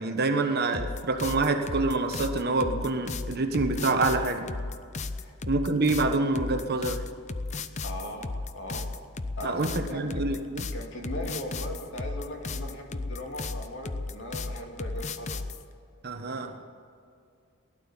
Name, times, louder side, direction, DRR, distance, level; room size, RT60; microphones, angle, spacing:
voice 1, 0.0-4.5 5.4-7.1 9.4-10.7 16.0-16.6, right 3 dB, 45° right, 6 dB, 1.2 m, -27 dB
sound 1, 0.7-15.6, left 3 dB, 30° left, 0.6 m, -34 dB
voice 2, 7.8-8.9 9.4-10.0 10.7-15.4, left 1 dB, 55° left, 1 dB, 2.6 m, -38 dB
16.5 x 12.0 x 7.2 m, 2.4 s
head